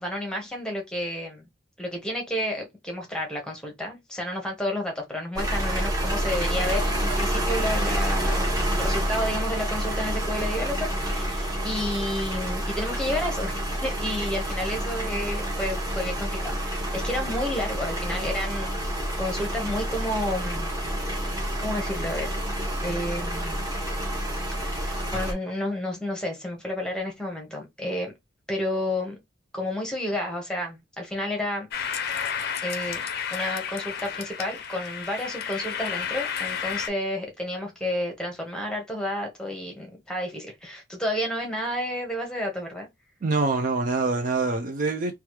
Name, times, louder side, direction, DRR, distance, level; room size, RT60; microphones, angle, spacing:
voice 1, 0.0-1.5 1.8-18.9 19.2-20.8 21.2-22.3 22.8-23.7 24.7-28.1 28.5-29.2 29.5-31.7 32.6-33.0 33.3-42.9, left 1 dB, 5° left, 1.0 m, -31 dB
sound 1, 5.4-25.3, equal, 20° right, 1.0 m, -28 dB
sound 2, 31.7-36.9, left 7 dB, 50° left, 0.5 m, -31 dB
voice 2, 43.2-45.1, right 3 dB, 40° right, 0.4 m, -25 dB
3.1 x 2.3 x 3.0 m
head